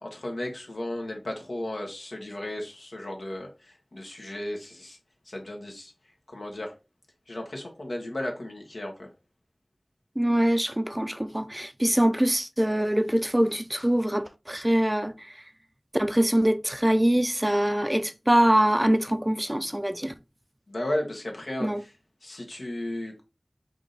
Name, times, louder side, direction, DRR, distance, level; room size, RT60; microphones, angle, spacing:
voice 1, 0.0-5.0 5.3-5.9 6.3-6.7 7.3-9.1 20.7-21.9 22.2-23.2, left 1 dB, 90° left, 1.2 m, -34 dB
voice 2, 10.2-15.1 15.9-20.1 21.6-21.8, right 1 dB, 15° right, 0.4 m, -23 dB
4.8 x 2.7 x 3.9 m
wide cardioid pair, 40°, 0 cm